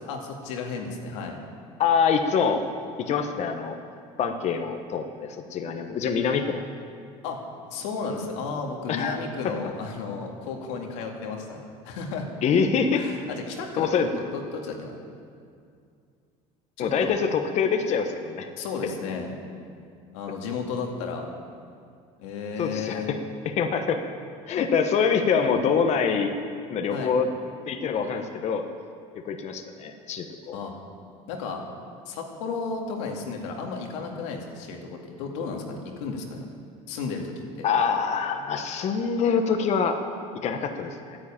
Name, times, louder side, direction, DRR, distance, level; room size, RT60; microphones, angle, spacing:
voice 1, 0.1-1.4 7.2-7.4 7.7-12.3 12.9-15.0 16.8-17.2 18.6-19.3 20.1-21.3 22.2-23.1 26.9-27.1 30.5-30.7 31.3-31.6 32.1-36.5 36.9-37.7, left 4 dB, 90° left, 1 dB, 2.3 m, -33 dB
voice 2, 1.8-2.6 3.0-3.8 4.2-6.6 8.9-9.2 12.4-13.1 13.8-14.1 16.8-18.5 22.6-23.2 23.4-24.0 24.5-26.3 26.7-27.3 27.7-28.6 29.2-30.6 37.6-40.0 40.4-41.2, left 6 dB, 50° left, 5 dB, 1.1 m, -25 dB
13.0 x 9.9 x 8.8 m, 2.3 s
supercardioid pair, 105°, 15 cm